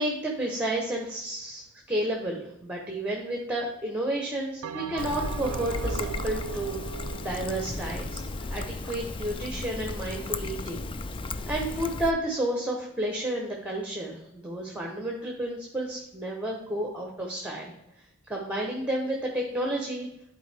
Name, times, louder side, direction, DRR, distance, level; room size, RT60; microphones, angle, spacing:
voice 1, 0.0-6.8 7.2-8.2 8.5-10.8 11.5-17.7 18.3-20.1, right 1 dB, 5° right, 0 dB, 0.9 m, -31 dB
Bell, 4.6-9.2, right 8 dB, 90° right, 0.3 m, -39 dB
Trickle dribble, 5.0-12.1, left 3 dB, 25° left, 0.3 m, -35 dB
11.0 x 4.4 x 3.4 m, 0.87 s
head